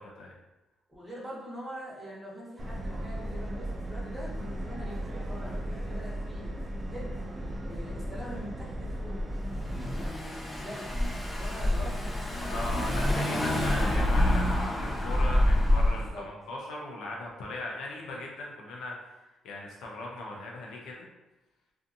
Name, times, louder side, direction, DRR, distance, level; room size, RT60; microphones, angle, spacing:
voice 1, 0.9-6.6 6.9-7.2 7.6-9.2 9.7-10.9 11.4-12.6 13.0-13.7 15.9-16.3, equal, 10° right, -6 dB, 1.1 m, -43 dB
Subway metro underground, 2.6-10.1, right 1 dB, 30° right, 0.4 m, -36 dB
Car / Engine, 9.2-16.1, left 1 dB, 35° left, 0.6 m, -27 dB
voice 2, 12.5-21.1, left 2 dB, 85° left, -2 dB, 0.6 m, -39 dB
2.6 x 2.4 x 2.6 m, 1.0 s
cardioid pair, 90°, 0 cm